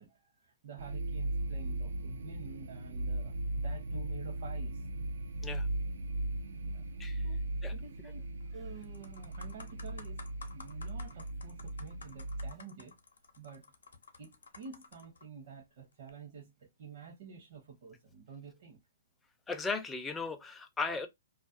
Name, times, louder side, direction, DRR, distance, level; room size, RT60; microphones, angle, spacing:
voice 1, 0.0-4.9 6.6-6.8 7.2-8.2 8.5-10.2 10.5-12.9 13.4-13.7 14.2-18.8, right 6 dB, 55° right, 0.7 m, -50 dB
sound 1, 0.8-12.5, right 1 dB, 80° right, 0.3 m, -37 dB
sound 2, 8.2-8.5 8.8-15.2 15.9-16.1, left 4 dB, 90° left, 0.6 m, -53 dB
voice 2, 19.5-21.1, left 4 dB, 10° left, 0.4 m, -36 dB
2.3 x 2.2 x 2.4 m
hypercardioid pair, 145°, 0 cm